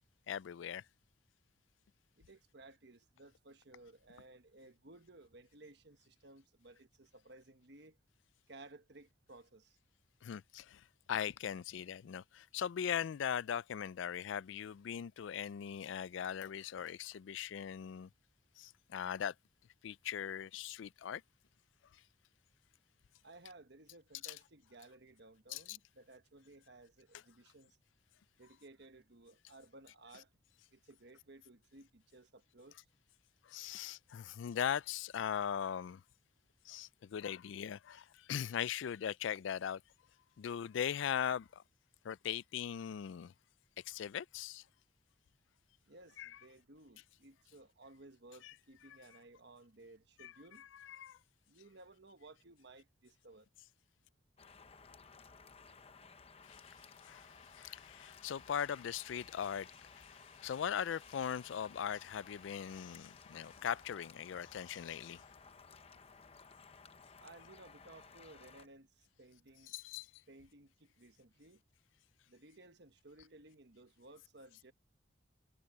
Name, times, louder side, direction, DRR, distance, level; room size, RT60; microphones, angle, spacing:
voice 1, 0.3-0.8 10.2-10.8 11.1-18.1 18.6-19.3 19.8-21.2 24.2-24.3 25.5-25.8 33.5-36.0 36.7-39.8 40.4-41.6 42.0-43.3 43.9-44.6 46.2-46.3 48.4-48.5 50.2-50.3 50.8-51.2 57.0-65.2 69.7-70.1, left 8 dB, 70° left, 0.3 m, -40 dB
voice 2, 2.2-8.0 8.5-9.8 23.2-27.8 28.4-30.3 30.7-32.8 45.9-50.7 51.5-53.5 67.2-69.7 70.3-71.6 72.3-74.7, right 2 dB, 60° right, 1.3 m, -58 dB
sound 1, 54.4-68.7, left 5 dB, 30° left, 0.8 m, -58 dB
head